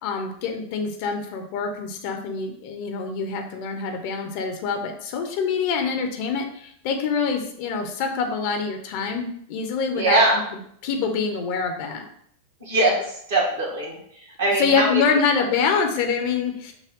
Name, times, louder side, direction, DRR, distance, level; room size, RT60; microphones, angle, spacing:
voice 1, 0.0-10.2 10.8-12.0 14.6-16.7, left 5 dB, 45° left, 4 dB, 0.7 m, -25 dB
voice 2, 9.9-10.4 12.6-14.0 14.4-15.0, right 2 dB, 60° right, -2 dB, 1.5 m, -21 dB
6.1 x 2.2 x 3.7 m, 0.67 s
figure-of-eight pair, 90°, 0 cm